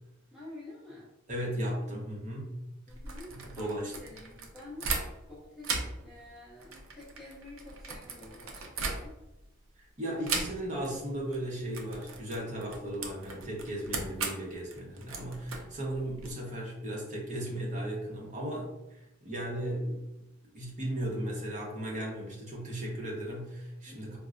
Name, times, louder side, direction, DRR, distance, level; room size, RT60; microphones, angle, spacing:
voice 1, 0.3-1.1 2.9-4.8 5.3-5.7 6.0-9.1 13.8-14.0 23.9-24.2, left 2 dB, ahead, -8 dB, 0.5 m, -49 dB
voice 2, 1.3-2.5 3.3-3.9 9.8-20.0 20.5-24.2, right 1 dB, 35° right, -2 dB, 0.8 m, -36 dB
sound 1, 2.9-5.3 5.6-9.4 10.2-10.9 11.2-11.4 11.7-16.3, right 4 dB, 70° right, 0.5 m, -37 dB
4.4 x 2.1 x 2.4 m, 0.94 s
head